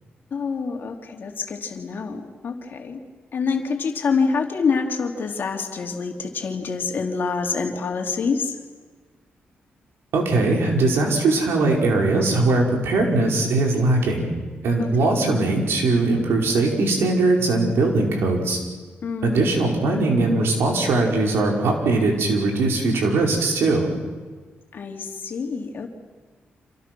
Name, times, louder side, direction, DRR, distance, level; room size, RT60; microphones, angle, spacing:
voice 1, 0.3-3.0 3.3-8.5 14.8-15.3 19.0-19.5 24.7-25.9, left 5 dB, 55° left, 3 dB, 3.2 m, -26 dB
voice 2, 10.1-14.3 14.6-18.6 19.2-23.9, right 2 dB, 80° right, 0 dB, 5.1 m, -20 dB
28.0 x 27.0 x 6.2 m, 1.4 s
cardioid pair, 90°, 4 cm